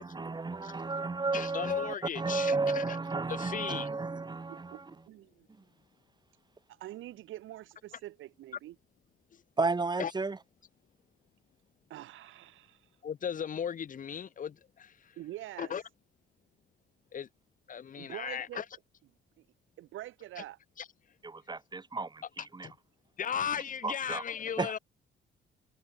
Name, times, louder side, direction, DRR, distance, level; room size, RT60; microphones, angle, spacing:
voice 1, 0.0-4.9 9.6-10.4 21.2-22.7 23.8-24.2 24.6-24.8, right 3 dB, 20° right, 1.6 m, -33 dB
voice 2, 1.3-2.5 3.4-3.9 10.0-10.1 13.0-14.5 15.6-15.8 17.1-17.3 17.7-18.6 22.6-22.7 23.2-24.8, left 8 dB, 45° left, 0.8 m, -35 dB
voice 3, 4.5-5.5 6.7-8.8 11.9-12.8 15.2-15.8 18.0-18.7 19.4-19.5 19.8-20.6, right 14 dB, 80° right, 1.0 m, -45 dB
cardioid pair, 90°, 20 cm